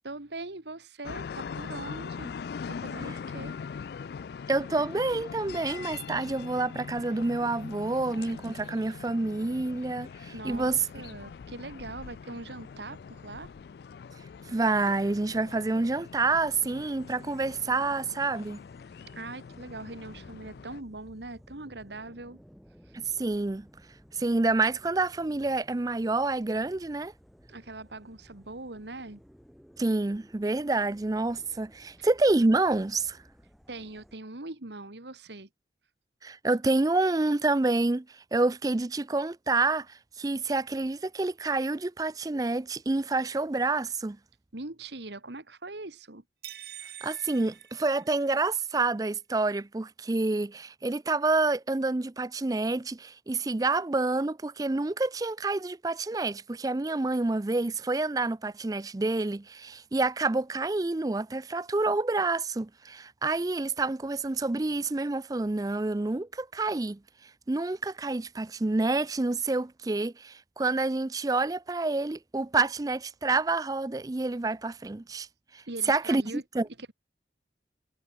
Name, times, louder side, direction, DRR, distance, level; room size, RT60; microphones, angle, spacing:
voice 1, 0.0-2.3 2.7-3.6 10.3-13.5 19.1-22.4 22.9-23.0 27.5-29.2 32.0-32.1 33.7-35.5 44.5-46.2 75.7-76.4 76.8-76.9, right 2 dB, 75° right, 2.0 m, -41 dB
sound 1, 1.0-20.8, left 6 dB, 60° left, 0.3 m, -42 dB
voice 2, 4.5-10.9 14.5-18.6 22.9-23.7 24.1-27.1 29.8-33.2 36.2-44.2 47.0-75.3 75.5-76.2 76.5-76.7, right 3 dB, 20° right, 0.4 m, -28 dB
sound 2, 16.3-34.2, equal, ahead, 1.1 m, -57 dB
sound 3, 46.4-48.6, right 11 dB, 60° right, 1.4 m, -46 dB
head